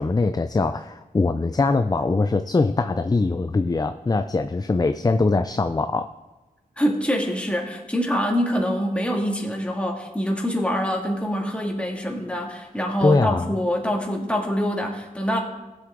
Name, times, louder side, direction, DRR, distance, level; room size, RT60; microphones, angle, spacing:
voice 1, 0.0-6.1 13.0-13.5, left 3 dB, 25° left, 9 dB, 0.4 m, -22 dB
voice 2, 6.8-15.4, equal, 10° left, 0 dB, 2.2 m, -25 dB
16.5 x 7.6 x 3.7 m, 1.1 s
cardioid pair, 60°, 15 cm